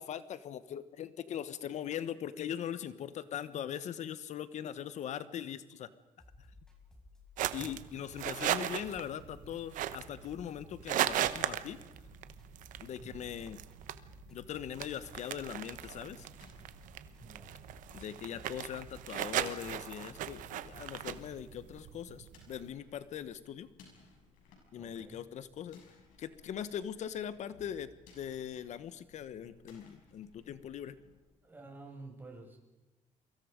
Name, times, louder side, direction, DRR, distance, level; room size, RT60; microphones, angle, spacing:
voice 1, 0.0-5.9 7.5-11.8 12.8-13.6 14.3-16.3 17.9-23.7 24.7-25.8 26.2-30.9, left 9 dB, 65° left, 14 dB, 1.2 m, -41 dB
sound 1, 6.2-21.4, left 3 dB, 5° left, 6.4 m, -58 dB
sound 2, 7.4-22.7, right 12 dB, 80° right, 1.1 m, -38 dB
voice 2, 13.0-13.3 17.2-17.5 24.7-25.2 31.4-32.6, right 3 dB, 15° right, 1 dB, 6.4 m, -50 dB
sound 3, 15.9-31.2, left 4 dB, 90° left, 7.1 m, -62 dB
30.0 x 23.5 x 5.2 m, 1.0 s
cardioid pair, 110°, 13 cm